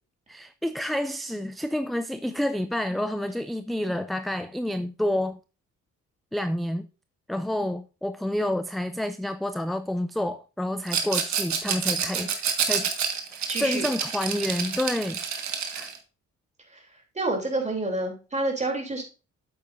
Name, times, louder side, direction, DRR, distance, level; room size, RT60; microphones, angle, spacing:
voice 1, 0.3-5.4 6.3-6.9 7.3-12.9 13.3-15.2 15.7-15.9, left 1 dB, ahead, 0.3 m, -29 dB
Rattle, 10.9-16.0, right 7 dB, 65° right, 1.6 m, -28 dB
voice 2, 13.5-13.8 17.1-19.0, right 2 dB, 25° right, 3.1 m, -28 dB
8.4 x 7.9 x 2.6 m
cardioid pair, 90°, 30 cm